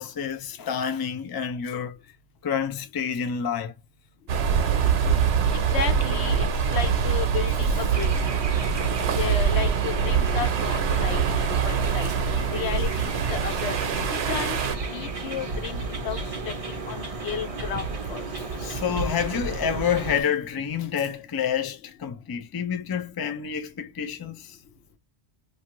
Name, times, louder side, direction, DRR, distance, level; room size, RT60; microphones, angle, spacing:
voice 1, 0.0-2.0 2.4-3.7 18.6-24.6, left 8 dB, 35° left, 0.3 m, -28 dB
sound 1, 4.3-14.8, right 7 dB, 75° right, 0.9 m, -24 dB
voice 2, 5.5-8.1 9.2-11.2 11.6-12.1 12.5-13.8 14.1-14.6 14.8-16.2 16.7-18.3, left 8 dB, 80° left, 0.9 m, -33 dB
sound 2, 7.9-20.2, right 3 dB, 40° right, 0.6 m, -33 dB
2.6 x 2.4 x 2.9 m
omnidirectional pair, 1.1 m